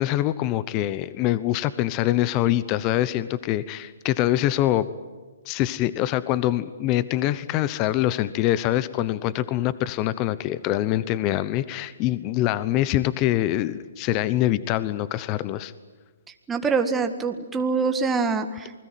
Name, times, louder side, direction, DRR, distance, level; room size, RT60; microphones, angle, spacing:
voice 1, 0.0-4.9 5.5-15.7, left 14 dB, 30° left, 16 dB, 0.9 m, -24 dB
voice 2, 16.5-18.7, right 4 dB, 10° right, 5 dB, 1.7 m, -24 dB
28.5 x 21.0 x 9.3 m, 1.4 s
hypercardioid pair, 140°, 0 cm